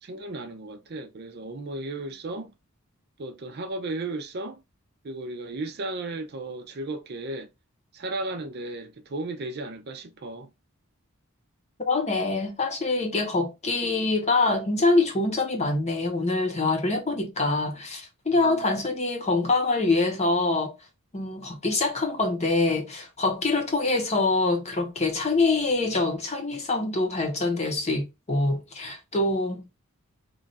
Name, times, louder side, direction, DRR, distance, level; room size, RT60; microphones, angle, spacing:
voice 1, 0.0-2.5 3.2-4.6 5.0-7.5 7.9-10.5 18.4-18.8, right 2 dB, 45° right, 0.5 m, -35 dB
voice 2, 11.8-20.7 21.1-29.6, left 3 dB, 30° left, 0.8 m, -25 dB
3.1 x 2.4 x 3.9 m
head